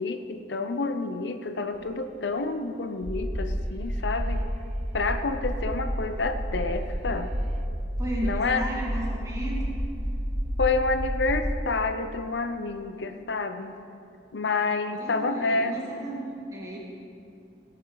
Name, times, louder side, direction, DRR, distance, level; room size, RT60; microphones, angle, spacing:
voice 1, 0.0-4.4 4.9-7.3 8.2-8.7 10.6-13.7 14.3-15.8, left 3 dB, 80° left, 8 dB, 0.6 m, -28 dB
sound 1, 1.7-3.2 3.6-6.5 6.8-7.7, right 1 dB, 35° right, 0.6 m, -46 dB
sound 2, 3.0-11.5, equal, 60° right, 2.2 m, -30 dB
voice 2, 8.0-9.8 15.0-16.8, right 1 dB, 20° right, -4 dB, 2.4 m, -34 dB
17.5 x 10.0 x 4.0 m, 2.6 s
head